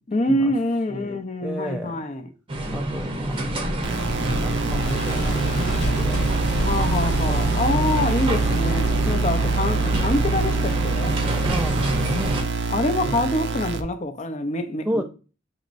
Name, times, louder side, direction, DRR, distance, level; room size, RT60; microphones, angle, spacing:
voice 1, 0.0-2.3 6.6-11.2 12.7-15.0, left 1 dB, 40° left, 0.6 m, -25 dB
voice 2, 0.9-2.1 2.7-3.6 4.2-6.2 7.2-7.5 11.4-12.4 13.0-13.2 14.9-15.0, equal, 5° right, 0.3 m, -31 dB
sound 1, 2.5-12.4, right 1 dB, 30° right, 0.7 m, -27 dB
sound 2, 3.2-11.0, left 1 dB, 90° left, 1.3 m, -37 dB
sound 3, 3.8-13.8, right 4 dB, 75° right, 0.5 m, -25 dB
6.5 x 3.0 x 2.5 m
head